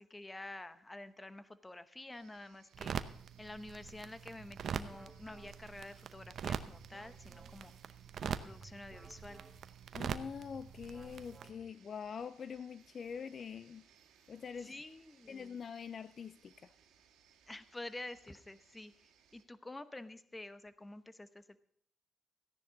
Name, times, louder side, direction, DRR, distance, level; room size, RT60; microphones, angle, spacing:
voice 1, 0.0-3.0 3.4-7.7 8.2-9.4 14.6-15.6 17.5-21.6, left 2 dB, 15° left, 0.9 m, -49 dB
sound 1, 2.1-19.4, right 8 dB, 85° right, 2.1 m, -67 dB
sound 2, 2.7-11.5, right 8 dB, 60° right, 0.7 m, -43 dB
sound 3, 3.9-12.0, right 2 dB, 15° right, 2.5 m, -60 dB
voice 2, 9.9-13.9 14.3-14.7 15.3-16.7, left 6 dB, 45° left, 0.4 m, -44 dB
15.0 x 10.0 x 3.9 m
cardioid pair, 90°, 0 cm